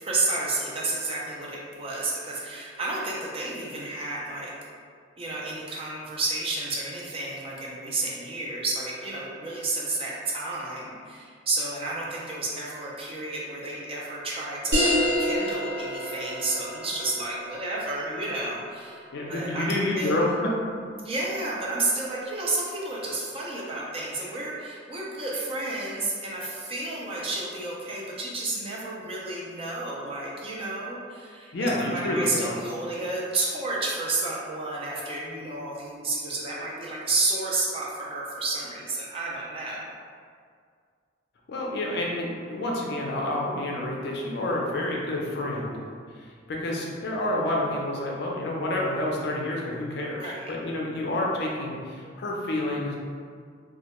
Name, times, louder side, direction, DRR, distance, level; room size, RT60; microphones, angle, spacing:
voice 1, 0.0-4.5 5.2-19.0 19.3-20.3 21.0-39.9 50.1-50.5, right 2 dB, 30° right, -4 dB, 0.4 m, -31 dB
sound 1, 14.7-19.8, equal, 65° right, 0.9 m, -29 dB
voice 2, 19.1-20.5 31.5-32.6 41.5-45.8 46.2-53.0, left 1 dB, 60° left, -2 dB, 0.4 m, -29 dB
2.2 x 2.1 x 2.9 m, 2.1 s
head